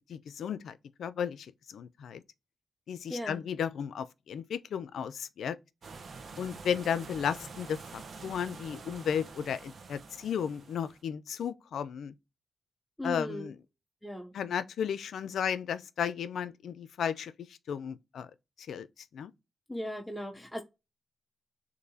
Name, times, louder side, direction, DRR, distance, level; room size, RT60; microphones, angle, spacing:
voice 1, 0.1-2.2 2.9-5.6 6.4-12.1 13.0-13.6 14.3-18.3 18.6-19.3, left 8 dB, 85° left, 0.4 m, -34 dB
voice 2, 3.1-3.4 13.0-13.5 14.0-14.3 19.7-20.6, left 1 dB, 5° left, 0.6 m, -37 dB
sound 1, 5.8-11.0, right 4 dB, 60° right, 0.8 m, -47 dB
6.6 x 2.6 x 2.7 m
cardioid pair, 100°, 0 cm